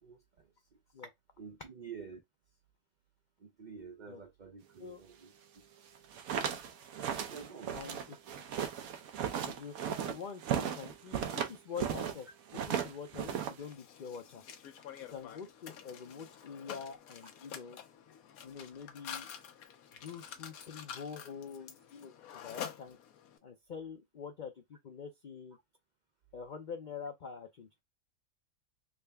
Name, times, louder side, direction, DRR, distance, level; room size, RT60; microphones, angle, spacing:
voice 1, 0.0-0.5 1.4-2.2 3.4-5.6 7.3-7.8, right 6 dB, 60° right, 0.4 m, -49 dB
sound 1, 5.9-12.2 12.5-13.7, right 8 dB, 80° right, 1.1 m, -36 dB
voice 2, 7.7-8.2 9.4-12.3 12.5-14.4 14.8-17.8 18.4-19.3 20.0-23.0 23.4-25.6 26.3-27.8, left 6 dB, 55° left, 0.5 m, -46 dB
Mechanisms, 13.6-23.4, left 8 dB, 80° left, 1.2 m, -48 dB
3.6 x 2.2 x 3.3 m
omnidirectional pair, 1.5 m